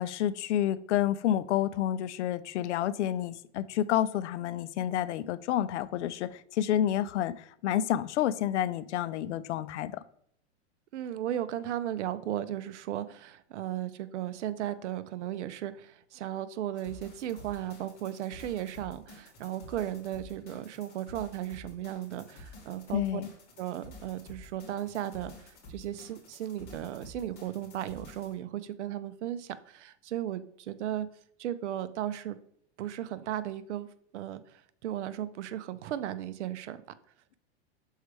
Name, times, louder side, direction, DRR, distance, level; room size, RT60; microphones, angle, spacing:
voice 1, 0.0-10.0 22.9-23.3, left 11 dB, 85° left, 16 dB, 0.5 m, -29 dB
voice 2, 10.9-23.2 23.6-31.1 31.4-32.4 32.8-33.9 34.1-36.8, right 11 dB, 85° right, 14 dB, 0.6 m, -36 dB
sound 1, 16.8-28.3, left 2 dB, 30° left, 2.5 m, -50 dB
6.4 x 4.6 x 3.2 m, 0.68 s
supercardioid pair, 140°, 34 cm